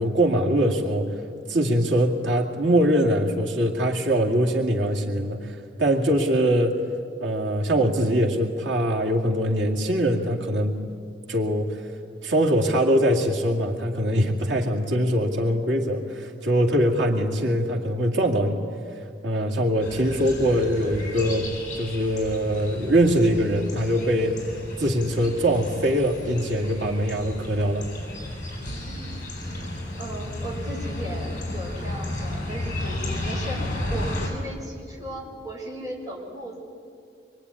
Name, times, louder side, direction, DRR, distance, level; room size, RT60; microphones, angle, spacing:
voice 1, 0.0-6.8 7.2-10.8 11.3-11.9 12.2-18.7 19.2-21.5 21.7-27.9, equal, 90° right, 0 dB, 2.4 m, -23 dB
sound 1, 19.8-34.3, left 1 dB, 45° left, 7.8 m, -33 dB
voice 2, 28.8-29.2 30.0-33.6 33.9-36.6, right 1 dB, 20° right, -2 dB, 6.5 m, -36 dB
25.5 x 23.5 x 9.8 m, 2.3 s
head